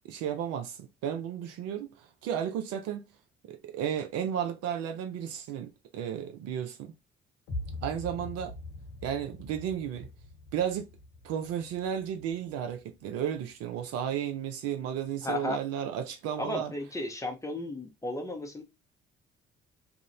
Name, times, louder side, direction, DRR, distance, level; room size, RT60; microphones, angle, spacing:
voice 1, 0.0-3.1 3.5-6.9 7.8-8.5 9.0-10.1 10.5-10.9 11.2-16.7, right 9 dB, 50° right, 0.5 m, -33 dB
sound 1, 7.5-13.5, left 2 dB, 55° left, 0.9 m, -43 dB
voice 2, 15.2-15.6 16.4-18.6, left 2 dB, 10° left, 0.7 m, -34 dB
2.4 x 2.0 x 2.8 m
figure-of-eight pair, 45°, 31 cm